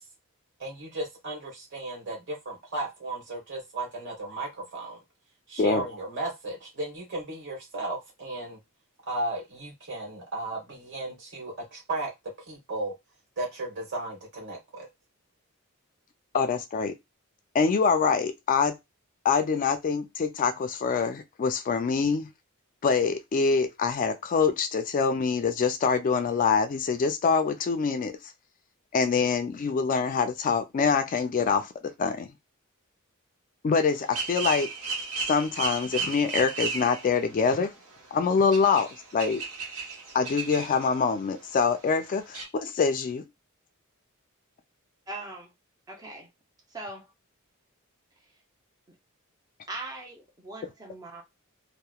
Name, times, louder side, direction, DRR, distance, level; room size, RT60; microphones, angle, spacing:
voice 1, 0.6-5.0 5.5-8.6 9.1-12.1 12.5-12.9 13.4-14.9, right 2 dB, 55° right, 1.3 m, -35 dB
voice 2, 16.3-17.0 17.5-18.8 19.2-22.3 22.8-28.2 28.9-32.3 33.6-34.7 35.3-37.7 38.1-39.4 40.1-43.2, left 5 dB, 40° left, 0.3 m, -25 dB
sound 1, 33.9-37.3 37.6-37.7 38.0-38.2 38.5-41.0 41.3-41.4 41.7-41.8 41.9-42.0 42.3-42.5, right 4 dB, 75° right, 0.9 m, -34 dB
voice 3, 45.1-45.5 45.9-46.3 46.7-47.1 49.7-51.2, right 2 dB, 15° right, 0.6 m, -40 dB
2.8 x 2.0 x 2.2 m
head